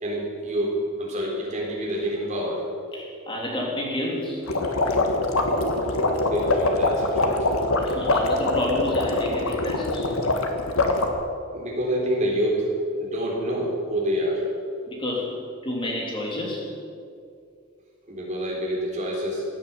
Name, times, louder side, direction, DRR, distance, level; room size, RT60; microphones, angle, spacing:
voice 1, 0.0-2.6 6.2-7.5 11.5-12.7 13.0-14.4 18.1-19.5, equal, 35° right, -3 dB, 3.9 m, -27 dB
voice 2, 2.9-4.4 7.8-10.1 14.9-15.3 15.6-16.6, left 1 dB, 25° left, -2 dB, 3.1 m, -29 dB
sound 1, 4.5-11.1, left 2 dB, 75° left, 1.6 m, -23 dB
16.0 x 9.5 x 7.1 m, 2.4 s
head